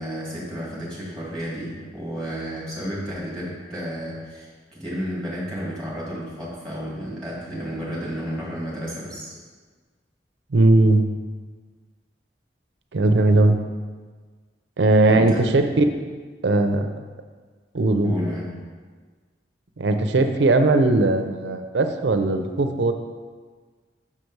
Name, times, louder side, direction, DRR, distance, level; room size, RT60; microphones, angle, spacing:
voice 1, 0.0-9.3 15.0-15.4 18.0-18.5, equal, 5° left, -6 dB, 2.0 m, -32 dB
voice 2, 10.5-11.1 12.9-13.6 14.8-15.8 16.4-16.9 17.7-18.1 19.8-22.9, right 2 dB, 80° right, 6 dB, 0.6 m, -18 dB
6.5 x 5.9 x 4.6 m, 1.5 s
head